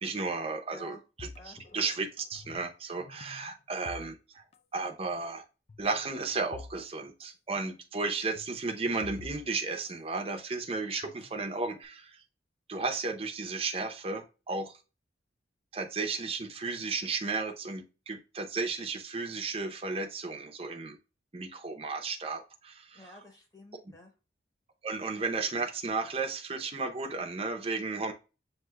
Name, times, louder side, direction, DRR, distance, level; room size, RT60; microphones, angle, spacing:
voice 1, 0.0-4.4 4.7-5.4 5.8-12.2 12.7-14.8 15.7-21.0 21.3-23.0 24.8-28.1, right 3 dB, 30° right, 0.6 m, -34 dB
sound 1, 1.2-2.7 3.0-4.6 4.8-5.1 5.7-6.8 7.1-7.2 8.4-10.4 11.0-11.8, left 3 dB, 35° left, 0.3 m, -49 dB
voice 2, 22.9-24.1, left 2 dB, 20° left, 1.0 m, -51 dB
7.6 x 2.6 x 2.2 m
head